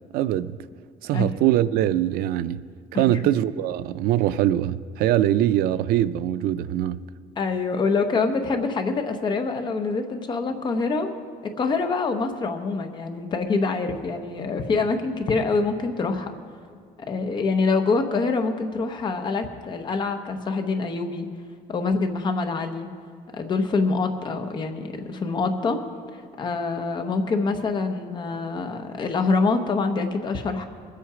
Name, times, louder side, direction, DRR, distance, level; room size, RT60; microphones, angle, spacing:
voice 1, 0.1-0.6 1.0-2.6 2.9-7.0, right 12 dB, 85° right, 0.4 m, -22 dB
voice 2, 7.4-11.2 11.4-16.3 17.1-21.3 21.7-22.9 23.3-25.8 26.4-30.7, left 4 dB, 30° left, 0.9 m, -25 dB
21.0 x 8.4 x 4.9 m
cardioid pair, 175°, 15 cm